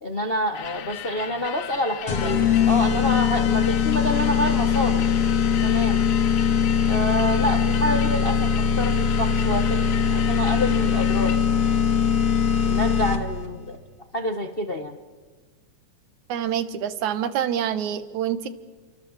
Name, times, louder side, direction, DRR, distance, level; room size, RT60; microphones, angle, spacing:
voice 1, 0.0-5.0 5.6-6.0 6.9-9.8 10.1-11.4 12.6-13.8 14.1-15.0, left 1 dB, 85° left, 4 dB, 0.5 m, -27 dB
sound 1, 0.5-11.4, left 11 dB, 65° left, 1.4 m, -37 dB
sound 2, 2.1-13.5, left 7 dB, 50° left, 2.5 m, -21 dB
voice 2, 16.3-18.5, right 9 dB, 70° right, 12 dB, 2.6 m, -26 dB
30.0 x 24.0 x 7.4 m, 1.3 s
omnidirectional pair, 3.6 m